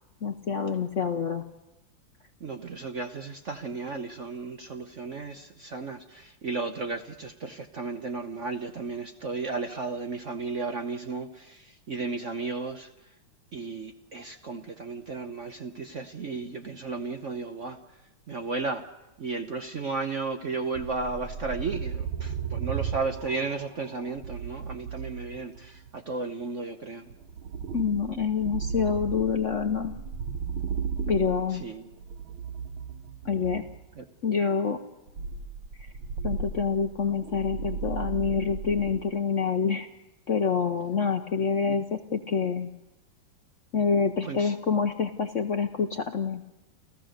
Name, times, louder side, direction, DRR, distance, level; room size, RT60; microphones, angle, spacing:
voice 1, 0.2-1.4 27.7-29.9 31.1-31.6 33.2-33.6 34.2-34.8 36.2-39.9 40.3-42.7 43.7-46.4, left 6 dB, 55° left, 6 dB, 0.9 m, -27 dB
voice 2, 2.4-12.9 13.5-17.8 18.3-18.9 19.2-27.1 31.5-31.9 34.0-34.1 41.7-41.8 44.2-44.5, right 4 dB, 50° right, 6 dB, 1.0 m, -34 dB
sound 1, 20.7-26.0 27.1-33.9 35.1-39.0, right 6 dB, 75° right, 2.1 m, -35 dB
29.5 x 14.5 x 6.6 m, 0.98 s
omnidirectional pair, 2.3 m